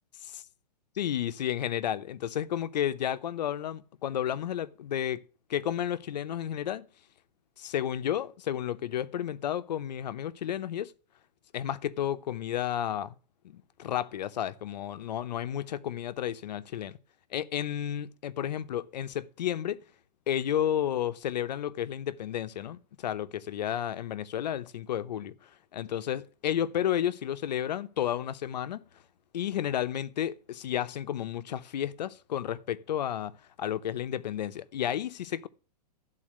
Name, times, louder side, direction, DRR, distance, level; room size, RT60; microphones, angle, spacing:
voice 1, 1.0-5.2 5.5-6.9 7.6-10.9 11.5-13.1 13.4-17.0 17.3-19.8 20.3-28.9 29.3-33.3 33.6-35.5, left 10 dB, 85° left, 0.8 m, -32 dB
12.0 x 4.1 x 7.5 m
hypercardioid pair, 165°, 21 cm